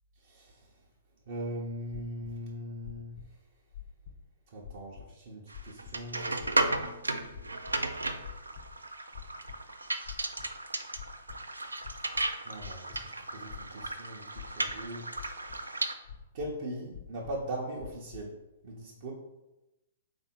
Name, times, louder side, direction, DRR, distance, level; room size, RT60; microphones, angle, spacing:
voice 1, 0.2-0.7 1.3-3.2 4.5-6.3 12.4-15.1 16.3-19.1, right 1 dB, 55° right, -3 dB, 0.7 m, -40 dB
sound 1, 1.9-2.3 2.8-3.3 3.7-4.3 4.6-5.1 5.5-6.0 6.4-6.8 7.3-7.8 8.2-8.8 9.1-9.6 10.0-10.6 10.9-11.4 11.8-13.0 13.5-13.9 14.4-14.9 15.2-15.6 16.0-16.5 16.9-17.5 17.8-18.2, left 9 dB, 55° left, 0.5 m, -46 dB
sound 2, 5.5-15.9, right 2 dB, 85° right, 0.3 m, -34 dB
3.5 x 2.6 x 4.3 m, 0.97 s
figure-of-eight pair, 120°, 0 cm